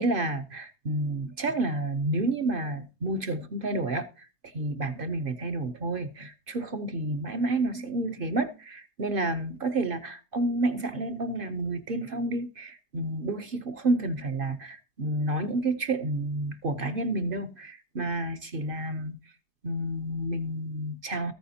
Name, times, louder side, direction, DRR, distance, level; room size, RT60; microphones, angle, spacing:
voice 1, 0.0-19.2 19.6-21.3, right 2 dB, 50° right, 0.6 m, -30 dB
14.0 x 9.1 x 2.8 m
omnidirectional pair, 1.8 m